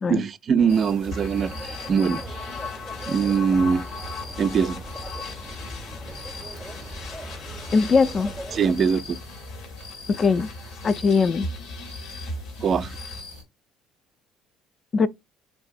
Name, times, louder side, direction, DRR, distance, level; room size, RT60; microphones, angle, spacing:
voice 1, 0.1-2.2 3.1-3.9 4.4-4.8 8.5-9.2 12.6-13.0, right 6 dB, 45° right, 0.3 m, -22 dB
sound 1, 0.6-8.7, right 1 dB, 5° right, 0.6 m, -40 dB
sound 2, 0.7-13.4, left 3 dB, 80° left, 1.1 m, -42 dB
sound 3, 1.1-13.2, left 2 dB, 65° left, 0.7 m, -38 dB
voice 2, 7.7-8.3 10.1-10.5 10.8-11.5 14.9-15.1, left 5 dB, 40° left, 0.3 m, -20 dB
3.5 x 2.5 x 2.4 m
hypercardioid pair, 60°, 0 cm